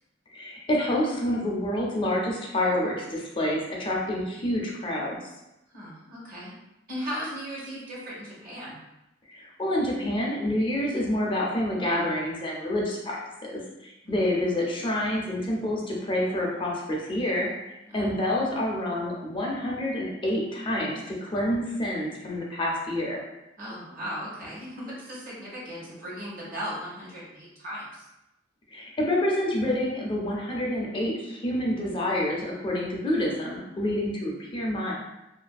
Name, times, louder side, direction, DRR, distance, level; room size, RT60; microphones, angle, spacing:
voice 1, 0.3-5.2 9.3-13.2 13.4-23.2 28.7-34.9, left 1 dB, 25° left, -3 dB, 0.4 m, -28 dB
voice 2, 5.7-6.5 6.9-8.8 14.0-14.1 17.9-18.1 23.6-28.0, equal, 50° right, -6 dB, 1.0 m, -37 dB
2.6 x 2.5 x 2.3 m, 0.92 s
head